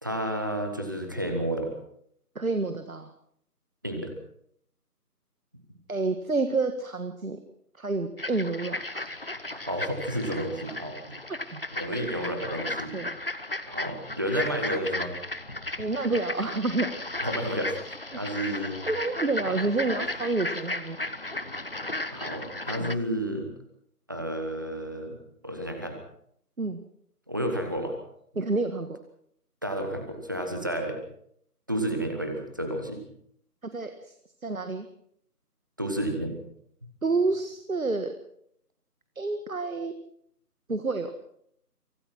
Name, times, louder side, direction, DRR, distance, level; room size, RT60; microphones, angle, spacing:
voice 1, 0.0-1.7 3.8-4.1 9.5-11.1 11.7-12.9 13.7-15.1 17.2-17.8 18.2-18.8 19.4-19.6 22.1-23.5 24.1-25.2 25.4-26.0 27.3-27.9 29.6-31.0 31.7-33.0 35.8-36.3, right 1 dB, 15° right, 4 dB, 1.4 m, -31 dB
voice 2, 2.4-3.1 5.9-7.4 7.8-9.1 11.4-11.6 12.9-13.2 15.8-16.9 18.9-21.1 22.8-22.9 26.6-26.8 28.4-29.0 33.7-34.1 34.4-34.9 37.0-38.1 39.2-39.9 40.7-41.1, right 3 dB, 60° right, 8 dB, 1.8 m, -29 dB
sound 1, 8.2-22.9, left 2 dB, 35° left, 0.9 m, -35 dB
25.0 x 17.5 x 6.1 m, 0.69 s
figure-of-eight pair, 165°, 48 cm